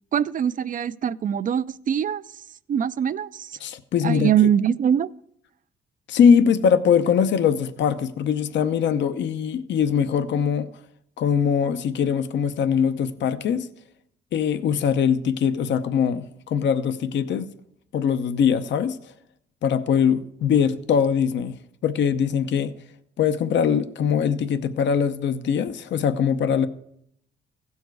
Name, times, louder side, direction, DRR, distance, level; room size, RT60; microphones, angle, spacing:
voice 1, 0.1-2.2 2.7-3.6 4.0-5.1, right 9 dB, 45° right, 0.4 m, -23 dB
voice 2, 3.6-4.3 6.1-10.7 11.2-13.7 14.3-17.5 17.9-19.0 19.6-21.6 21.8-22.8 23.2-26.7, left 7 dB, 65° left, 0.7 m, -22 dB
16.0 x 7.2 x 4.7 m
cardioid pair, 90°, 20 cm